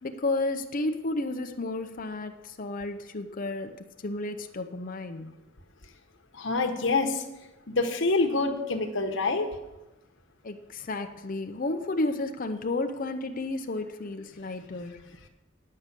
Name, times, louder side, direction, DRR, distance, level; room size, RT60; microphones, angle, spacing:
voice 1, 0.0-3.8 4.0-5.3 10.4-15.0, left 2 dB, 45° left, 6 dB, 0.7 m, -32 dB
voice 2, 6.3-7.2 7.7-9.5, left 3 dB, 65° left, 4 dB, 1.2 m, -26 dB
9.7 x 6.5 x 7.4 m, 1.0 s
head